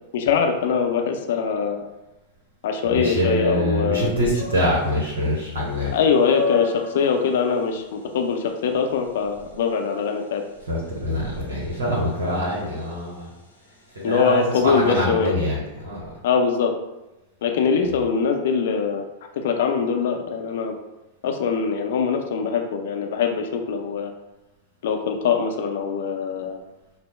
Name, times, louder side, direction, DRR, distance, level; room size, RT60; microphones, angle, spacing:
voice 1, 0.1-1.8 2.6-4.1 5.9-10.4 14.0-15.3 16.2-16.7 17.4-19.0 19.4-20.7 21.2-24.1 24.8-26.6, left 6 dB, 55° left, 4 dB, 0.5 m, -22 dB
voice 2, 2.9-5.9 10.7-13.3 13.9-16.1 17.9-18.0, equal, 70° right, -5 dB, 1.1 m, -24 dB
sound 1, 4.3-15.1, left 5 dB, 90° left, 0.9 m, -34 dB
5.5 x 2.1 x 3.2 m, 0.97 s
figure-of-eight pair, 90°, 0 cm